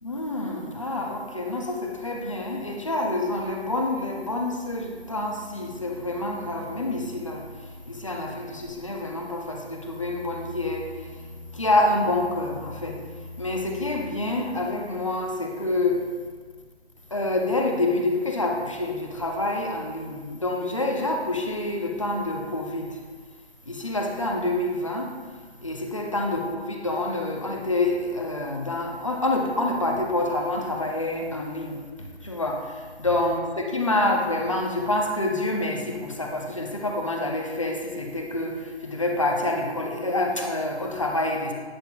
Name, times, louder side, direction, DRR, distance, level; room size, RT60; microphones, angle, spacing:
voice 1, 0.0-16.2 17.1-23.0 23.6-25.1 25.6-41.5, left 2 dB, 30° left, 1 dB, 0.6 m, -27 dB
8.8 x 8.0 x 2.3 m, 1.5 s
hypercardioid pair, 175°, 34 cm